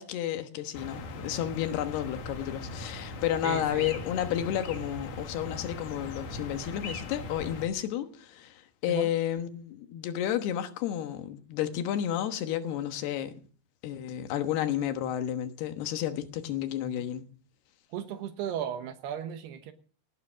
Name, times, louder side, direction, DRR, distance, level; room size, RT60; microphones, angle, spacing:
voice 1, 0.0-13.3 13.8-17.2, left 11 dB, 80° left, 3.3 m, -31 dB
sound 1, 0.7-7.7, left 3 dB, 60° left, 3.1 m, -40 dB
voice 2, 3.4-3.9 8.9-9.1 17.9-19.7, right 9 dB, 85° right, 3.3 m, -35 dB
18.5 x 9.7 x 6.3 m
omnidirectional pair, 4.6 m